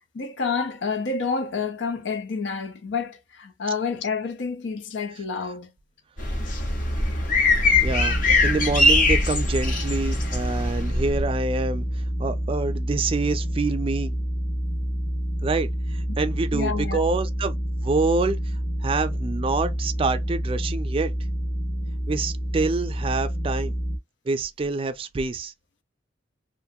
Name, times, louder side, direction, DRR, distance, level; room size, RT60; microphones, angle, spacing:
voice 1, 0.1-5.7 8.3-8.4 16.5-17.1, left 5 dB, 80° left, 0.5 m, -29 dB
sound 1, 6.2-11.2, left 2 dB, 50° left, 0.9 m, -22 dB
sound 2, 7.7-24.0, equal, 20° left, 0.6 m, -28 dB
voice 2, 7.8-8.2 8.4-11.8 12.2-14.2 15.4-17.6 17.8-18.4 18.8-21.1 22.1-23.7 24.3-25.5, right 3 dB, 30° right, 0.3 m, -26 dB
2.5 x 2.3 x 2.6 m
head